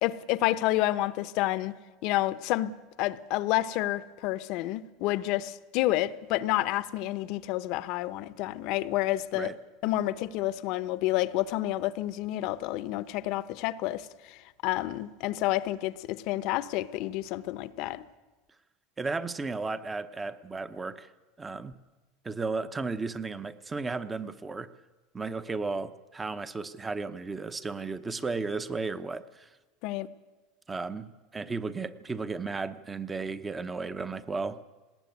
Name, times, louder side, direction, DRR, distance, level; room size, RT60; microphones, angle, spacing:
voice 1, 0.0-1.7 2.0-2.7 3.0-9.5 9.8-18.0 29.8-30.1, left 16 dB, 55° left, 0.9 m, -29 dB
voice 2, 19.0-21.1 21.4-21.7 22.2-24.7 25.1-29.5 30.7-34.6, right 4 dB, 15° right, 0.9 m, -34 dB
19.5 x 18.0 x 9.4 m
supercardioid pair, 135°, 0 cm